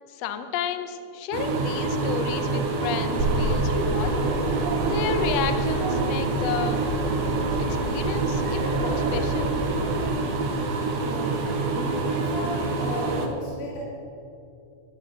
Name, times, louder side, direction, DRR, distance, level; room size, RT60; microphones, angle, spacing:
voice 1, 0.1-4.3 4.9-6.8 7.6-9.6, left 7 dB, 90° left, 8 dB, 1.5 m, -31 dB
sound 1, 1.3-13.3, right 3 dB, 70° right, 2.0 m, -27 dB
sound 2, 3.2-10.1, right 1 dB, 90° right, 3.4 m, -29 dB
voice 2, 10.9-13.8, left 1 dB, 70° left, -6 dB, 3.0 m, -34 dB
12.0 x 5.1 x 7.6 m, 2.5 s
omnidirectional pair, 3.7 m